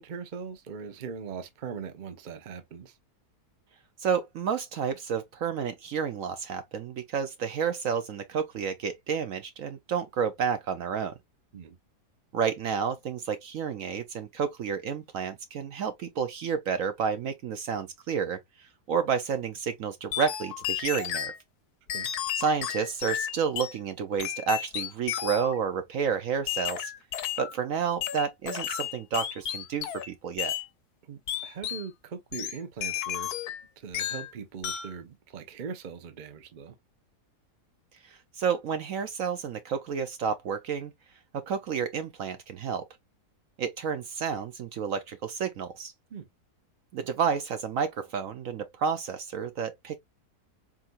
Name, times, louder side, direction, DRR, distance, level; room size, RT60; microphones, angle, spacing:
voice 1, 0.0-3.0 11.5-11.8 21.9-22.1 31.0-33.3 33.8-36.7 46.1-46.3, right 6 dB, 40° right, 0.7 m, -40 dB
voice 2, 4.0-11.1 12.3-18.4 18.9-21.3 22.4-26.9 27.4-30.5 38.0-40.9 41.3-42.8 43.6-45.9 46.9-50.0, right 6 dB, 65° right, 1.0 m, -30 dB
sound 1, 20.1-21.4 21.9-23.8 24.2-25.6 26.5-27.5 28.0-30.1 30.4-30.7 31.3-31.9 32.3-33.6 33.9-34.3 34.6-35.0, left 11 dB, 70° left, 1.2 m, -33 dB
4.3 x 3.8 x 2.4 m
omnidirectional pair, 1.7 m